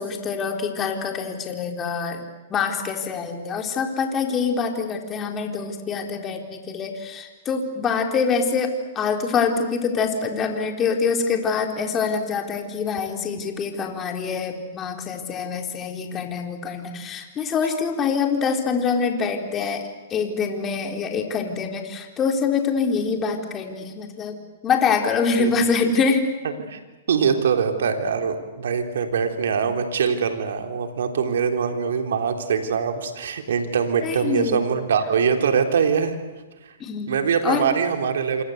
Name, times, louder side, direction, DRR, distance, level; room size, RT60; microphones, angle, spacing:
voice 1, 0.0-2.2 2.5-19.8 20.1-24.4 24.6-26.3 34.0-34.6 36.8-37.2 37.4-37.7, left 5 dB, 25° left, 3 dB, 4.2 m, -25 dB
voice 2, 27.1-36.2 36.6-36.7 37.1-38.4, right 6 dB, 75° right, 5 dB, 3.8 m, -23 dB
27.0 x 27.0 x 8.1 m, 1.2 s
hypercardioid pair, 130°, 0 cm